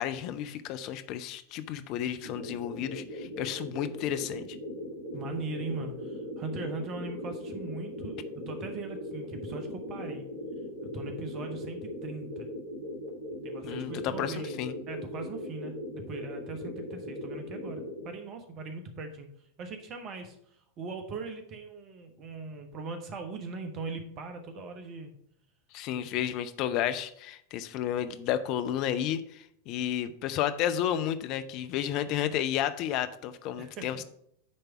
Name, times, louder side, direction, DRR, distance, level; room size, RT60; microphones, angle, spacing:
voice 1, 0.0-4.5 13.6-14.7 25.7-34.0, left 10 dB, 40° left, 10 dB, 0.6 m, -32 dB
sound 1, 2.2-18.1, left 1 dB, 55° right, 1.8 m, -39 dB
voice 2, 5.1-10.3 10.8-12.5 13.4-14.6 14.9-19.3 19.6-25.1 25.9-26.0 33.6-34.0, right 3 dB, 35° right, 6 dB, 1.1 m, -40 dB
9.6 x 3.4 x 5.9 m, 0.70 s
figure-of-eight pair, 90°, 0 cm